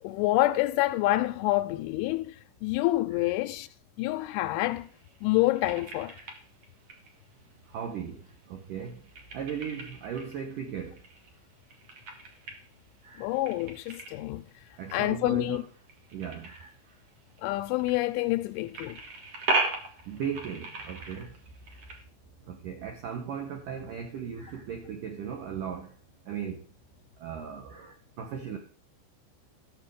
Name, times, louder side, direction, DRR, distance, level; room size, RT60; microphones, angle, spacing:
voice 1, 0.0-3.7 4.0-4.9 5.2-6.2 13.2-14.4 14.9-15.6 17.4-19.0, left 17 dB, 85° left, 3.1 m, -27 dB
sound 1, 4.4-22.0, right 3 dB, 55° right, 1.8 m, -39 dB
voice 2, 7.7-8.2 8.5-9.0 9.3-11.0 13.0-13.3 14.8-15.6 16.1-16.7 20.1-21.3 22.5-25.9 26.3-26.6 27.2-28.6, right 7 dB, 70° right, 2.0 m, -37 dB
14.0 x 6.9 x 4.8 m
omnidirectional pair, 5.5 m